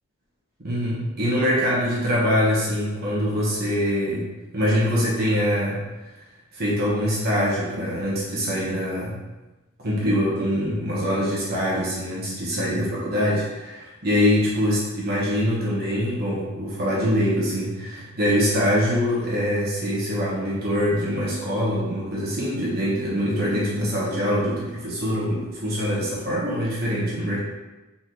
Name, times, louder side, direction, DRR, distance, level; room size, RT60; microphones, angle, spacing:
voice 1, 0.6-5.8 6.5-9.2 9.8-27.4, equal, 50° right, -6 dB, 1.1 m, -24 dB
4.1 x 3.0 x 3.9 m, 1.1 s
head